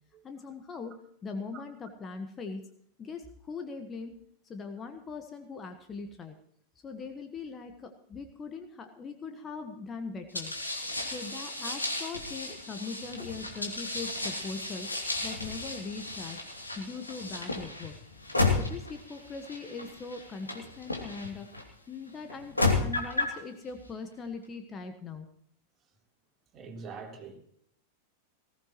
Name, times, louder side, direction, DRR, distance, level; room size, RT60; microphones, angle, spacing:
voice 1, 0.2-0.9 1.2-2.7 3.0-4.1 4.4-6.3 6.8-10.5 11.0-14.9 15.2-16.4 16.8-17.9 18.5-21.5 21.9-25.3, left 4 dB, 20° left, 1.4 m, -40 dB
sound 1, 10.3-21.6 22.3-23.4, left 3 dB, 85° left, 2.9 m, -33 dB
voice 2, 26.5-27.4, right 5 dB, 30° right, 3.6 m, -43 dB
19.5 x 16.5 x 3.1 m
figure-of-eight pair, 90°, 0 cm